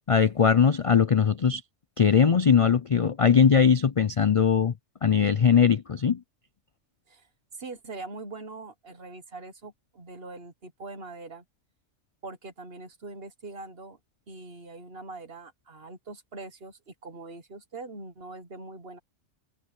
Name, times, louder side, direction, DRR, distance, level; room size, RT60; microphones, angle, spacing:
voice 1, 0.1-1.6 2.0-4.7 5.0-6.2, left 7 dB, 60° left, 0.3 m, -20 dB
voice 2, 7.5-11.4 12.2-14.0 14.3-19.0, right 3 dB, 50° right, 1.6 m, -42 dB
omnidirectional pair, 1.3 m